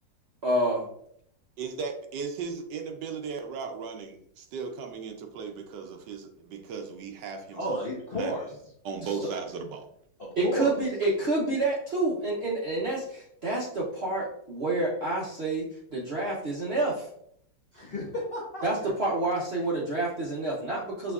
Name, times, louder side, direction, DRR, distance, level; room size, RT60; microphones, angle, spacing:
voice 1, 0.4-0.8 9.0-9.1 10.4-15.7 15.9-17.1 18.6-21.1, right 2 dB, 55° right, -5 dB, 0.7 m, -28 dB
voice 2, 1.6-7.7 8.2-8.3 8.8-9.9, right 5 dB, 75° right, 5 dB, 1.2 m, -36 dB
voice 3, 7.5-8.6 9.1-9.2 10.2-10.7 17.7-18.6, equal, 45° left, -4 dB, 0.7 m, -32 dB
5.9 x 3.0 x 2.3 m, 0.69 s
omnidirectional pair, 2.0 m